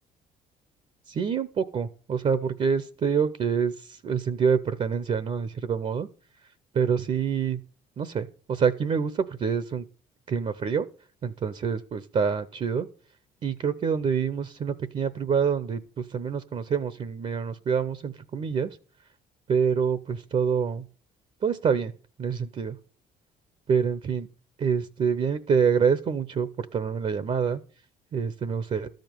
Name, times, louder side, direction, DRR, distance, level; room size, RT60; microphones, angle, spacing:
voice 1, 1.1-6.1 6.7-7.6 8.0-9.8 10.3-10.9 11.2-12.9 13.4-18.8 19.5-20.8 21.4-21.9 22.2-22.8 23.7-24.3 24.6-27.6 28.1-28.9, right 6 dB, 40° right, 13 dB, 0.8 m, -26 dB
13.0 x 5.2 x 9.2 m, 0.40 s
cardioid pair, 110°, 17 cm